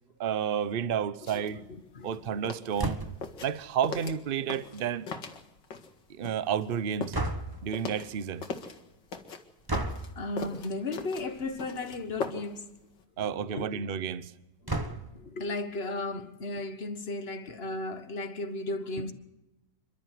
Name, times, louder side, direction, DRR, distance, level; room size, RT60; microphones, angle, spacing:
voice 1, 0.2-1.6 2.0-3.0 3.4-5.1 6.1-7.2 7.6-8.5 13.2-14.3, right 8 dB, 45° right, 0.8 m, -31 dB
sound 1, 1.3-1.5 1.9-6.0 6.2-8.8 9.1-12.7 12.9-13.0, left 5 dB, 90° left, 2.4 m, -40 dB
voice 2, 2.0-2.4 10.2-12.7 13.4-13.8 14.6-19.1, left 2 dB, 35° left, 1.6 m, -35 dB
sound 2, 2.8-3.3 7.1-7.7 9.7-10.1 11.3-11.6 12.0-12.1 12.3-12.4 14.7-15.3, right 2 dB, 15° right, 1.1 m, -32 dB
27.5 x 12.5 x 7.8 m
omnidirectional pair, 1.9 m